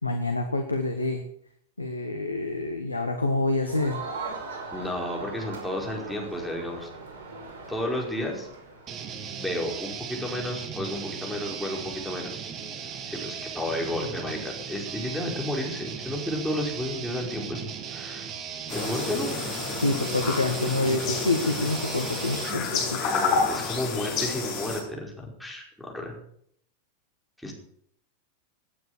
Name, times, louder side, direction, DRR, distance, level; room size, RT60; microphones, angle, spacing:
voice 1, 0.0-1.2 1.8-4.0 19.8-23.3, left 2 dB, 80° left, 5 dB, 1.6 m, -27 dB
Crowd, 3.6-9.0, right 4 dB, 55° right, 5.7 m, -39 dB
voice 2, 4.7-6.9 7.7-8.5 9.4-12.5 13.1-18.3 18.7-19.3 23.0-26.1 27.4-27.5, left 1 dB, ahead, -1 dB, 5.2 m, -32 dB
sound 1, 8.9-22.6, right 7 dB, 30° right, 1.8 m, -37 dB
sound 2, 18.7-24.8, left 4 dB, 40° left, 6.4 m, -29 dB
18.0 x 9.6 x 6.8 m, 0.67 s
figure-of-eight pair, 90°, 0 cm